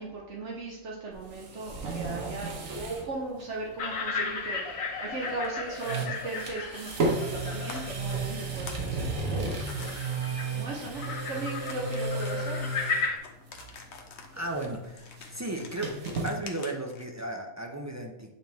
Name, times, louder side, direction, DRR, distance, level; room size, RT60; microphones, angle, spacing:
voice 1, 0.0-9.9 10.5-12.7, right 3 dB, 65° right, -2 dB, 1.2 m, -38 dB
sound 1, 1.1-3.1 3.4-3.5 5.2-5.5 5.7-13.1 13.5-13.9 14.2-16.3, right 3 dB, 85° right, 1.4 m, -33 dB
sound 2, 3.8-13.2, left 4 dB, 85° left, 1.3 m, -36 dB
sound 3, 7.3-7.4 7.7-7.8 8.4-8.9 9.2-9.9 11.7-17.0, left 5 dB, 60° left, 1.0 m, -47 dB
voice 2, 14.3-16.0 16.2-18.3, right 2 dB, 25° right, 1 dB, 0.3 m, -35 dB
8.8 x 3.1 x 3.4 m, 0.92 s
omnidirectional pair, 1.3 m